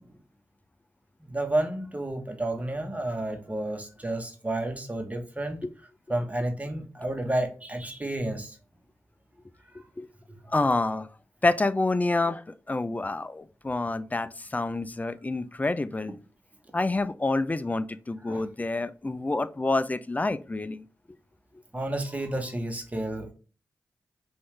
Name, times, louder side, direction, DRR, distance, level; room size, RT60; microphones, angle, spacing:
voice 1, 1.2-5.6 6.1-8.6 18.3-18.4 21.7-23.3, right 1 dB, 25° right, 1.3 m, -31 dB
voice 2, 10.5-11.1 11.4-16.2 16.7-20.8, left 2 dB, 25° left, 0.5 m, -28 dB
5.5 x 2.7 x 3.2 m
supercardioid pair, 40°, 6 cm